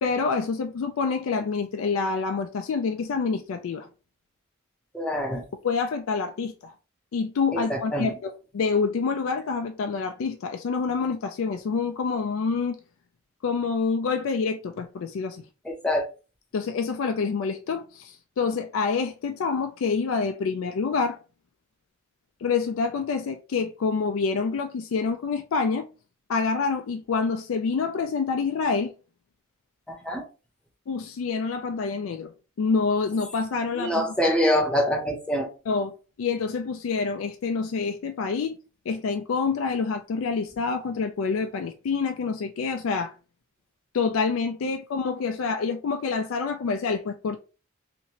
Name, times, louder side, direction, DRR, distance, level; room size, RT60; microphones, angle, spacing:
voice 1, 0.0-3.9 5.6-6.7 7.1-12.8 13.4-15.4 16.5-21.2 22.4-25.9 26.3-28.9 30.9-32.3 32.6-34.1 35.7-35.9 36.2-38.6 38.9-43.1 43.9-47.4, left 5 dB, 75° left, 0.4 m, -27 dB
voice 2, 4.9-5.5 7.5-8.1 15.6-16.1 29.9-30.3 33.7-35.5, equal, 5° left, 0.6 m, -25 dB
2.9 x 2.6 x 2.8 m
head